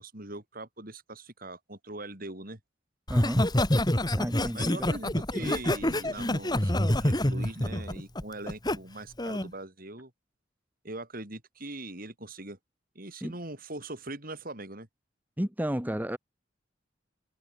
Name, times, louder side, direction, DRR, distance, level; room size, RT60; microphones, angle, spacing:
voice 1, 0.0-2.6 4.5-10.1 10.8-12.6 13.0-14.9, right 2 dB, 50° right, 5.3 m, -41 dB
Laughter, 3.1-8.8 9.2-9.5, left 1 dB, 20° left, 2.4 m, -27 dB
voice 2, 3.1-3.5 4.2-4.9 13.2-13.3 15.4-16.2, equal, 10° right, 1.3 m, -32 dB
head